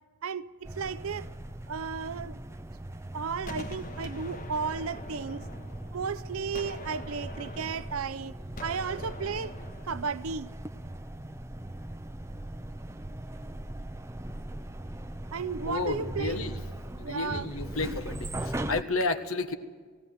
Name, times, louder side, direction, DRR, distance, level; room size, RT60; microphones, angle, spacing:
voice 1, 0.2-1.3 1.7-2.4 3.1-5.5 5.9-8.3 8.6-9.6 9.8-10.5 15.3-16.4 17.0-17.5, right 5 dB, 80° right, 0.6 m, -34 dB
sound 1, 0.6-18.8, right 1 dB, 10° right, 0.6 m, -40 dB
Gunshot gunfire, 3.5-6.2 6.5-10.1, left 1 dB, 40° left, 1.5 m, -43 dB
voice 2, 15.6-16.6 17.0-19.5, left 3 dB, 75° left, 1.5 m, -31 dB
18.5 x 18.0 x 9.5 m
head